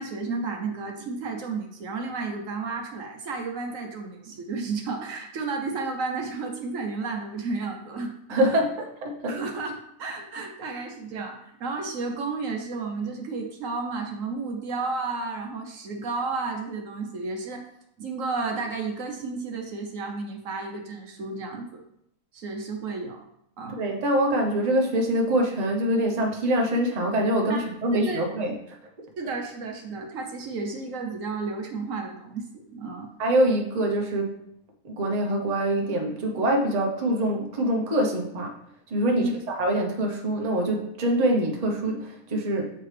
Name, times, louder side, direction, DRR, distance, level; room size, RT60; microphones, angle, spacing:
voice 1, 0.0-8.6 9.3-17.6 18.0-21.8 22.3-23.2 23.6-23.8 27.5-27.7 27.9-28.2 29.2-33.1 39.1-39.3, right 3 dB, 65° right, 2 dB, 1.2 m, -32 dB
voice 2, 8.3-9.4 23.7-28.5 33.2-34.4 34.8-38.5 38.9-42.7, right 1 dB, 35° right, 0 dB, 0.9 m, -24 dB
7.3 x 4.6 x 3.3 m, 0.75 s
omnidirectional pair, 1.5 m